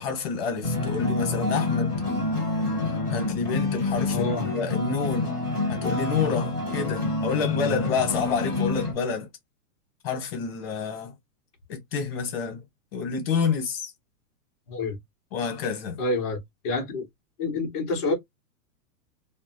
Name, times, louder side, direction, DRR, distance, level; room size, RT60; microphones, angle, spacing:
voice 1, 0.0-1.9 3.1-5.4 5.7-9.3 10.0-11.1 11.7-12.6 12.9-13.9 15.3-16.0, left 5 dB, 40° left, 1.0 m, -28 dB
sound 1, 0.6-8.9, left 2 dB, 15° right, 0.3 m, -27 dB
voice 2, 4.1-4.5 14.7-15.0 16.0-16.4 16.6-17.0 17.4-18.1, left 3 dB, 20° left, 0.6 m, -27 dB
2.6 x 2.1 x 2.5 m
supercardioid pair, 175°, 46 cm